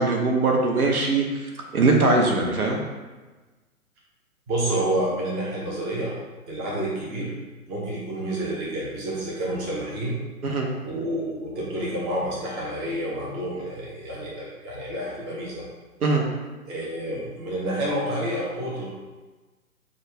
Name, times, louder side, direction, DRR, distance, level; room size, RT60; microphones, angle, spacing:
voice 1, 0.0-2.8 10.4-10.7 16.0-16.2, right 3 dB, 70° right, 1 dB, 1.0 m, -21 dB
voice 2, 4.5-6.1 6.5-7.4 7.7-10.2 10.8-15.6 16.7-18.9, right 1 dB, 20° right, -6 dB, 0.8 m, -29 dB
6.4 x 2.4 x 3.2 m, 1.3 s
figure-of-eight pair, 130°, 45 cm